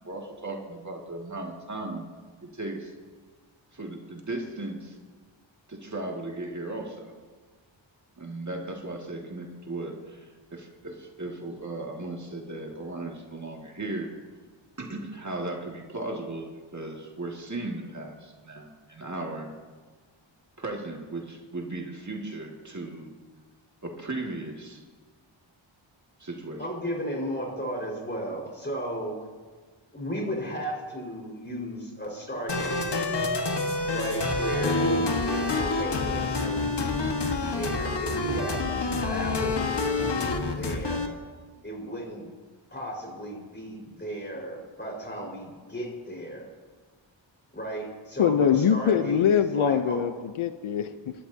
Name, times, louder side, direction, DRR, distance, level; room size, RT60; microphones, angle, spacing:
voice 1, 0.0-2.1 2.4-2.9 3.7-5.0 5.7-7.1 8.2-14.1 14.8-19.5 20.6-23.1 23.8-24.8 26.2-26.6, right 2 dB, 35° right, 0 dB, 2.1 m, -36 dB
voice 2, 26.6-29.2 29.9-32.8 33.9-39.7 40.4-41.1 41.6-42.3 42.7-46.5 47.5-50.0, equal, 20° left, -1 dB, 4.8 m, -35 dB
sound 1, 32.5-41.1, left 3 dB, 60° left, 1.6 m, -27 dB
voice 3, 48.2-51.1, left 8 dB, 90° left, 10 dB, 0.7 m, -23 dB
25.0 x 13.0 x 2.8 m, 1.5 s
wide cardioid pair, 75°, 47 cm